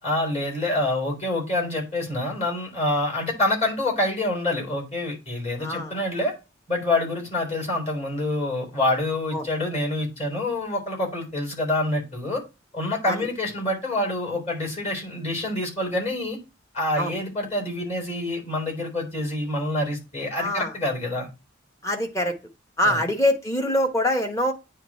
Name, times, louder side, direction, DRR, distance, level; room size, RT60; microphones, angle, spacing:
voice 1, 0.0-6.3 6.7-12.4 12.7-16.4 16.7-21.3 22.8-23.0, left 1 dB, 35° left, 0 dB, 3.7 m, -26 dB
voice 2, 5.6-6.0 9.3-9.5 13.1-13.3 17.0-17.1 20.4-20.7 21.8-22.4 22.8-24.5, left 1 dB, 15° left, 4 dB, 1.1 m, -24 dB
9.4 x 3.2 x 4.3 m, 0.26 s
head